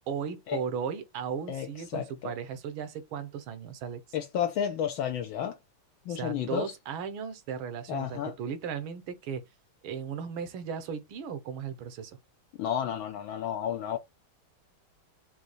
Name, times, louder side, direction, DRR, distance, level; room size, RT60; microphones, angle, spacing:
voice 1, 0.0-4.0 6.1-9.4 9.8-12.2, right 7 dB, 75° right, 1.6 m, -36 dB
voice 2, 1.5-2.3 4.1-5.6 6.1-6.7 7.9-8.3 12.6-14.0, left 9 dB, 75° left, 1.4 m, -32 dB
5.4 x 2.7 x 3.1 m
omnidirectional pair, 2.3 m